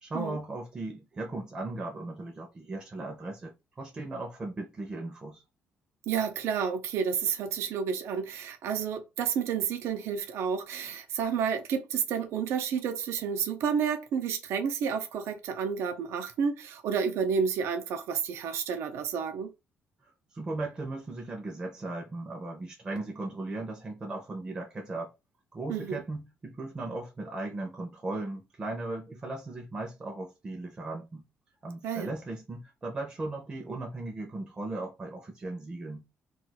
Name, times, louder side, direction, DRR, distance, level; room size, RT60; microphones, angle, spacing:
voice 1, 0.0-5.4 20.3-25.1 25.5-31.2 31.6-36.0, right 2 dB, 20° right, 0.6 m, -37 dB
voice 2, 6.1-19.5 25.7-26.0 31.8-32.1, right 7 dB, 80° right, 0.5 m, -30 dB
2.4 x 2.3 x 4.0 m
cardioid pair, 165°, 4 cm